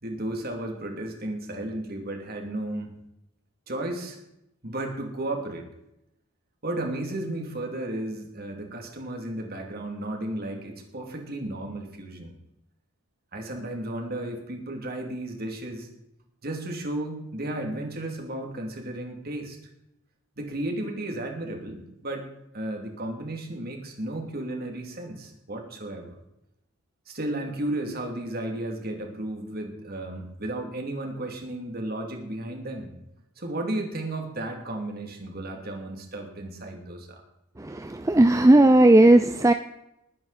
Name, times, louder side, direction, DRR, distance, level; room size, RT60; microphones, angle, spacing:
voice 1, 0.0-2.9 3.7-4.2 4.6-5.6 6.6-12.3 13.3-15.9 16.4-19.6 20.4-22.3 22.5-26.2 27.1-32.9 33.4-37.2, right 1 dB, 45° right, 3 dB, 2.7 m, -33 dB
voice 2, 37.6-39.5, right 1 dB, 15° right, 8 dB, 0.4 m, -16 dB
20.0 x 9.5 x 4.2 m, 0.84 s
head